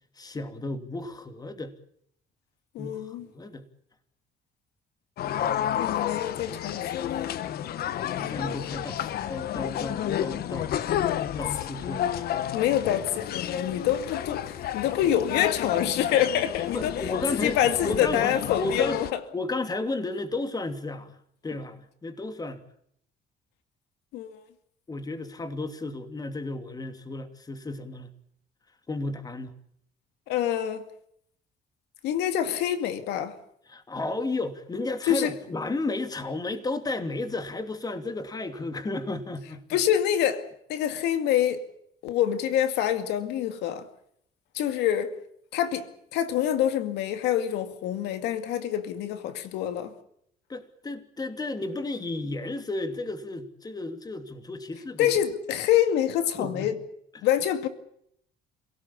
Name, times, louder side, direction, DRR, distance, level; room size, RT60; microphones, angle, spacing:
voice 1, 0.2-1.7 2.8-3.7 8.1-12.3 16.7-17.6 17.8-19.0 19.3-22.6 24.9-28.1 28.9-29.5 33.7-39.8 50.5-55.1 56.4-56.7 57.1-57.3, left 2 dB, 20° left, 2.8 m, -33 dB
voice 2, 2.7-3.3 5.7-7.3 12.5-16.9 17.4-19.2 24.1-24.4 30.3-30.8 32.0-33.4 35.1-35.3 39.7-41.6 42.0-43.9 44.5-45.2 45.5-45.9 46.1-49.9 55.0-56.8 57.2-57.7, left 10 dB, 90° left, 2.3 m, -26 dB
sound 1, 5.2-19.1, left 11 dB, 65° left, 1.3 m, -31 dB
27.5 x 18.0 x 8.6 m
cardioid pair, 110°, 17 cm